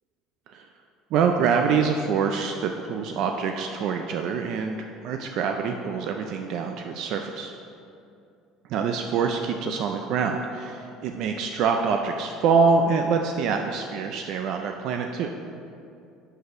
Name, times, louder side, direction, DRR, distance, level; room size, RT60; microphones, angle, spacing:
voice 1, 1.1-4.8 5.0-7.5 8.7-15.3, right 5 dB, 50° right, 4 dB, 0.4 m, -25 dB
6.0 x 5.4 x 5.5 m, 2.5 s
cardioid pair, 170°, 0 cm